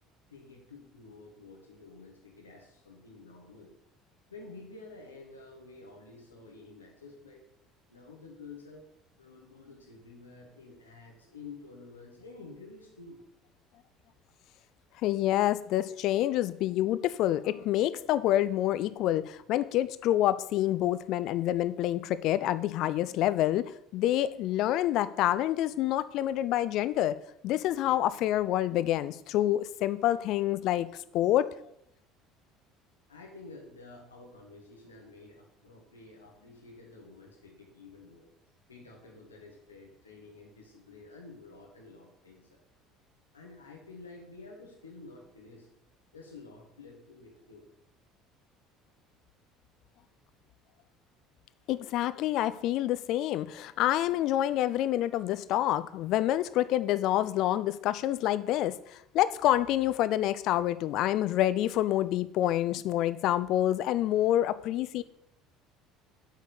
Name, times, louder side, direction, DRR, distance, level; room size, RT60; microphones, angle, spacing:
voice 1, 0.3-3.7 4.3-7.4 7.9-8.9 9.2-13.2 33.1-38.3 38.7-42.6 43.3-45.7 46.1-47.7, left 3 dB, 85° left, -1 dB, 1.5 m, -50 dB
voice 2, 15.0-23.7 23.9-27.1 27.4-30.9 31.1-31.5 51.7-65.0, left 13 dB, 55° left, 14 dB, 0.5 m, -27 dB
8.1 x 4.2 x 6.9 m, 0.75 s
figure-of-eight pair, 60°, 0 cm